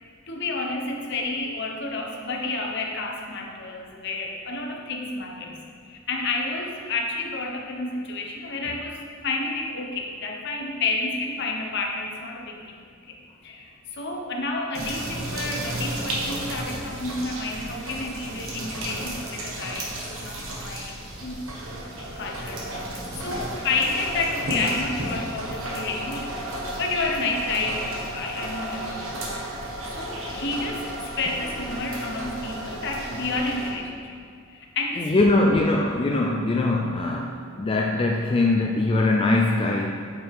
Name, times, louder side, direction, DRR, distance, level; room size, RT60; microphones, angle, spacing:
voice 1, 0.3-12.7 13.1-13.2 13.4-20.9 21.2-21.4 22.0-26.3 26.8-29.2 29.9-34.2 34.5-35.2, left 3 dB, 55° left, 1 dB, 1.0 m, -30 dB
sound 1, 14.7-33.7, right 1 dB, 70° right, 1.4 m, -33 dB
voice 2, 35.0-40.1, left 2 dB, 25° left, 0 dB, 0.4 m, -22 dB
8.9 x 5.6 x 3.6 m, 2.2 s
head